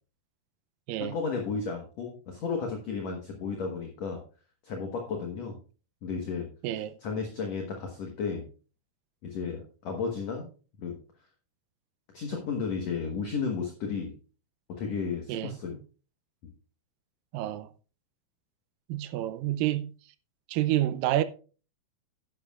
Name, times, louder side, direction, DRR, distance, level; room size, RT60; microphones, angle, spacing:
voice 1, 1.0-4.2 4.6-5.6 6.0-6.5 7.0-8.5 9.2-10.5 10.8-11.0 12.1-14.1 14.7-15.8, left 5 dB, 55° left, 2.0 m, -33 dB
voice 2, 6.6-6.9 15.3-15.5 17.3-17.7 18.9-19.9 20.5-21.2, right 13 dB, 80° right, 2.0 m, -28 dB
12.0 x 11.0 x 2.4 m
omnidirectional pair, 4.5 m